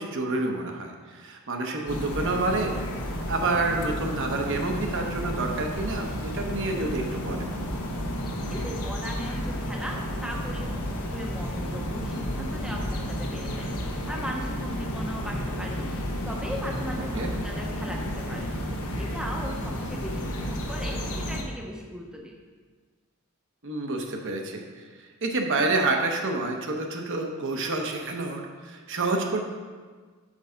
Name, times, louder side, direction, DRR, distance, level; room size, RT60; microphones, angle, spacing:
voice 1, 0.0-2.7 3.3-7.5 17.2-17.3 23.6-24.6 25.0-29.4, right 2 dB, 55° right, 3 dB, 0.9 m, -28 dB
sound 1, 1.9-21.4, equal, 75° left, 1.0 m, -32 dB
voice 2, 8.3-13.7 14.1-15.8 16.2-18.6 19.0-22.4, equal, 5° right, 0 dB, 0.7 m, -37 dB
6.0 x 5.4 x 5.6 m, 1.5 s
head